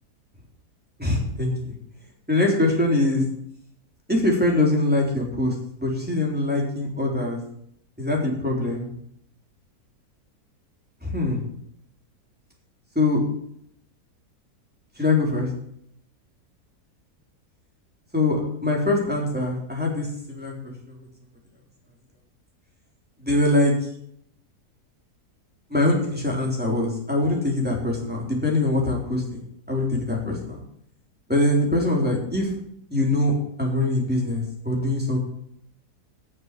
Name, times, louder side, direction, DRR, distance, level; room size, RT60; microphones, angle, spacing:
voice 1, 1.0-1.5 2.3-3.2 4.1-7.4 8.0-8.9 11.0-11.4 13.0-13.2 15.0-15.5 18.1-20.7 23.2-23.7 25.7-30.6 31.3-32.5 32.9-33.3 33.6-35.2, left 2 dB, 5° right, -2 dB, 3.7 m, -23 dB
9.7 x 7.3 x 9.3 m, 0.69 s
omnidirectional pair, 1.7 m